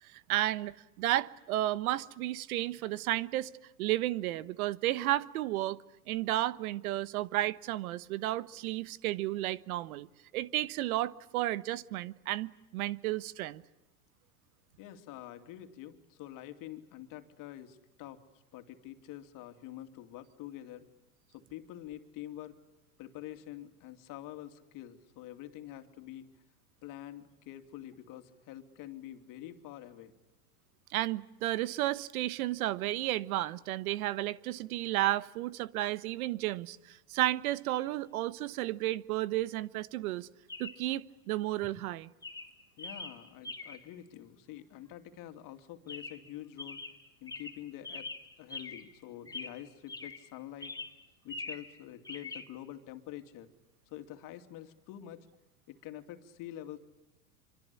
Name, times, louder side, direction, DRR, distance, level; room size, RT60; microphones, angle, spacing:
voice 1, 0.0-3.5 3.8-5.8 6.1-10.1 10.3-13.6 30.9-40.3 40.6-42.1, right 15 dB, 65° right, 1.2 m, -32 dB
voice 2, 14.8-18.2 18.5-20.9 21.3-22.6 23.0-26.3 26.8-30.1 42.8-46.8 47.2-48.1 48.4-50.7 51.2-53.5 53.9-55.3 55.7-56.8, left 13 dB, 45° left, 2.8 m, -46 dB
Chirp tweet, 37.7-37.9 40.5-40.9 41.6-41.9 42.2-43.9 45.9-46.3 46.6-49.0 49.3-50.3 50.6-51.8 52.0-52.5, left 3 dB, 10° left, 2.4 m, -44 dB
26.0 x 26.0 x 8.5 m
hypercardioid pair, 125°, 46 cm